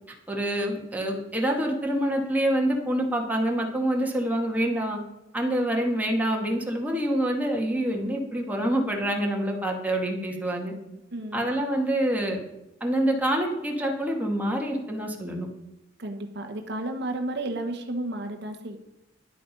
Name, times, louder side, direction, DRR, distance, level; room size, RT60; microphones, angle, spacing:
voice 1, 0.3-5.0 5.3-10.7 11.3-12.4 12.8-15.5, right 1 dB, 10° right, 0 dB, 1.8 m, -26 dB
voice 2, 10.9-11.5 16.0-18.8, right 1 dB, 60° right, 5 dB, 1.1 m, -32 dB
11.0 x 8.4 x 5.2 m, 0.94 s
head